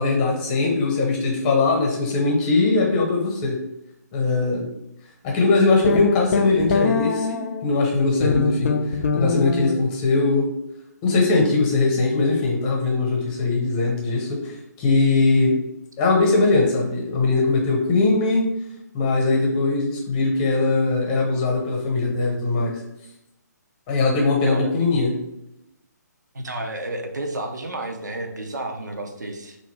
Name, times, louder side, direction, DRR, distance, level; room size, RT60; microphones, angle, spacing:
voice 1, 0.0-3.6 4.1-4.7 5.2-10.5 11.0-15.6 16.0-18.4 18.9-22.8 23.9-25.1, left 3 dB, 25° left, -1 dB, 0.9 m, -21 dB
sound 1, 5.8-7.6 8.2-9.8, left 4 dB, 50° left, 0.4 m, -23 dB
voice 2, 24.4-24.7 26.3-29.6, right 2 dB, 80° right, 3 dB, 0.6 m, -31 dB
3.6 x 2.6 x 3.3 m, 0.85 s
figure-of-eight pair, 140°, 10 cm